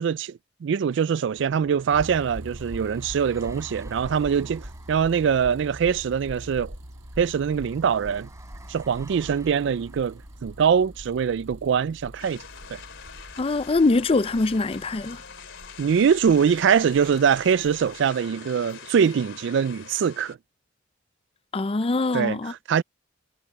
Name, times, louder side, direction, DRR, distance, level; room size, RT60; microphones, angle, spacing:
voice 1, 0.0-6.7 7.2-8.3 8.7-12.4 12.7-12.8 15.8-20.4 22.1-22.8, right 7 dB, 70° right, 0.3 m, -23 dB
sound 1, 1.3-15.1, right 1 dB, 15° right, 5.9 m, -52 dB
sound 2, 1.9-18.2, equal, 90° right, 8.0 m, -43 dB
sound 3, 12.2-20.3, left 6 dB, 80° left, 3.0 m, -44 dB
voice 2, 13.4-15.2 21.5-22.5, left 3 dB, 30° left, 0.5 m, -23 dB
head